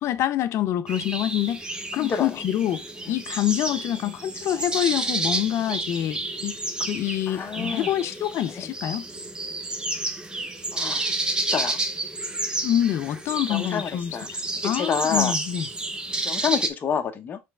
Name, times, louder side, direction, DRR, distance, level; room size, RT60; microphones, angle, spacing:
voice 1, 0.0-6.6 6.9-9.1 12.6-14.4 14.6-15.7, left 12 dB, 65° left, 0.5 m, -26 dB
sound 1, 0.9-16.7, right 2 dB, 15° right, 0.9 m, -30 dB
voice 2, 2.0-2.3 4.0-4.1 7.3-7.9 10.7-11.1 11.5-11.8 13.5-14.3 14.6-15.3 16.2-17.4, left 7 dB, 40° left, 0.9 m, -28 dB
4.4 x 3.3 x 3.7 m
supercardioid pair, 95°, 5 cm